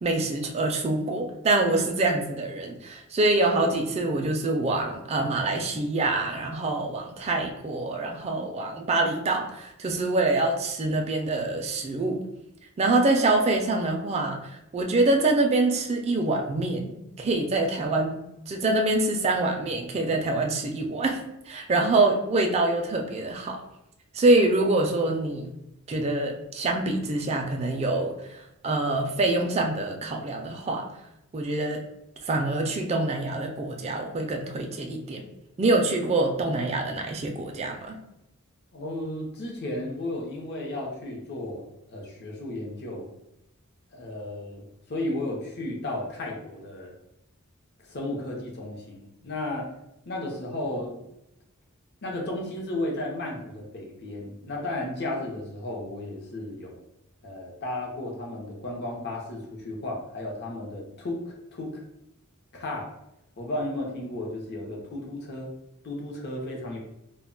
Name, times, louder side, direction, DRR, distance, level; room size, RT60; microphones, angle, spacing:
voice 1, 0.0-12.2 12.8-21.2 21.5-23.6 24.1-25.5 25.9-30.9 31.3-31.8 32.2-35.2 35.6-38.0, right 2 dB, 30° right, 2 dB, 0.3 m, -25 dB
voice 2, 38.7-41.6 41.9-43.1 43.9-44.6 44.9-46.9 47.9-49.7 50.1-51.0 52.0-56.8 57.2-61.8 62.5-62.9 63.4-65.5 65.8-66.8, left 1 dB, 50° left, -1 dB, 0.6 m, -34 dB
2.2 x 2.1 x 3.7 m, 0.85 s
head